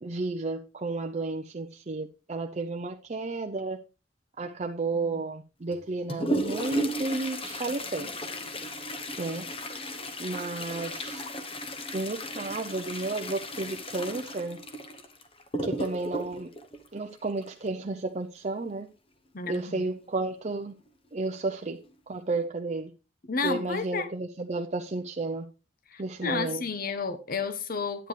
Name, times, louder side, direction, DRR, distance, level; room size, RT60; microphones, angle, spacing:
voice 1, 0.0-3.8 4.4-8.1 9.2-9.5 10.2-11.2 11.9-14.6 15.6-16.5 16.9-18.9 19.5-20.7 21.1-21.8 22.1-22.9 23.4-25.5 26.0-26.6, right 3 dB, 40° right, 0.6 m, -32 dB
Toilet flush, 5.7-17.7 19.5-19.6 20.0-20.1 20.9-21.0 21.6-21.9 22.3-22.4, equal, 30° left, 1.0 m, -35 dB
voice 2, 19.3-19.8 23.3-24.1 25.9-28.1, left 4 dB, 50° left, 1.0 m, -31 dB
10.5 x 9.0 x 3.3 m
head